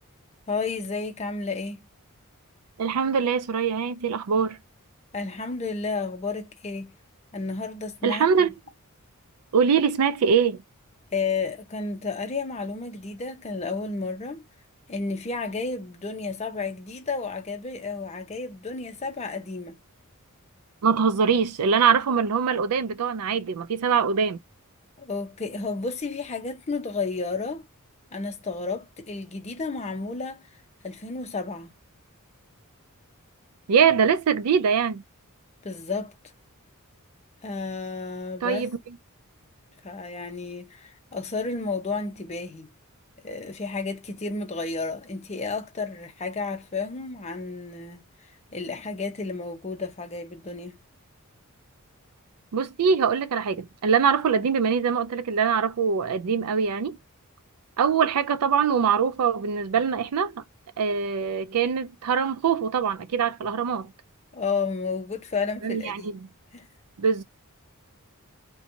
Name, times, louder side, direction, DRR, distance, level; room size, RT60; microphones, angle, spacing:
voice 1, 0.5-1.8 5.1-6.9 7.3-8.2 11.1-14.4 14.9-19.8 25.0-27.7 28.1-30.4 30.8-31.7 35.6-36.1 37.4-38.7 39.8-42.7 43.2-48.0 48.5-50.8 64.3-66.1 66.5-66.7, left 4 dB, 30° left, 0.6 m, -32 dB
voice 2, 2.8-4.6 8.0-8.5 9.5-10.6 20.8-24.4 33.7-35.0 38.4-38.8 52.5-57.0 57.8-60.4 60.8-63.9 65.6-66.2 67.0-67.2, right 6 dB, 85° right, 0.4 m, -23 dB
2.8 x 2.2 x 2.6 m
head